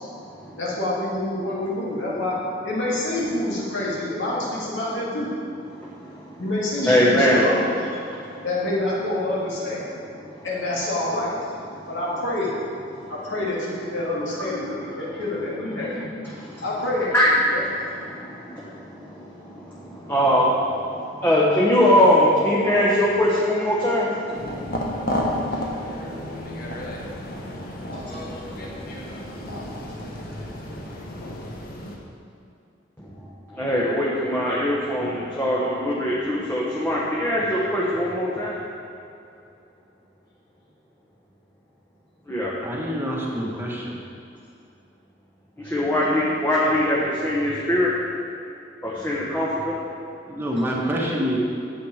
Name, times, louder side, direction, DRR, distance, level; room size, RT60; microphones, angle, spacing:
voice 1, 0.6-2.4 2.6-5.3 6.4-7.7 8.4-9.9 10.4-11.4 11.9-12.5 13.1-15.9 16.6-17.6, left 1 dB, 80° left, -6 dB, 2.1 m, -27 dB
voice 2, 5.8-6.3 6.8-7.4 8.3-8.4 15.8-16.1 16.4-16.6 17.1-17.3 18.1-20.9 21.2-25.8 26.1-29.2 29.5-29.6 29.9-30.4 33.5-38.6 42.3-42.5 45.6-47.9 48.8-49.7, left 1 dB, 10° left, -6 dB, 1.1 m, -23 dB
sound 1, 24.3-32.0, left 1 dB, 50° left, 1.2 m, -32 dB
voice 3, 42.6-44.0 50.3-51.4, equal, 10° right, -3 dB, 1.4 m, -26 dB
9.3 x 7.8 x 5.0 m, 2.7 s
head